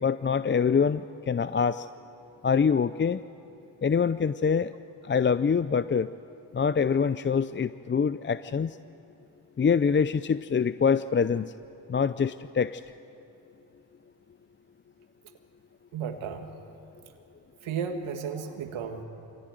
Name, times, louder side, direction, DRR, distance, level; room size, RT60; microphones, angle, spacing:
voice 1, 0.0-1.9 2.4-3.2 3.8-4.7 5.1-6.1 6.5-8.7 9.6-11.5 11.9-12.8, left 6 dB, 25° left, 14 dB, 0.5 m, -25 dB
voice 2, 15.9-16.5 17.6-19.0, right 6 dB, 85° right, 5 dB, 1.9 m, -33 dB
24.5 x 17.5 x 9.3 m, 2.9 s
supercardioid pair, 55°, 47 cm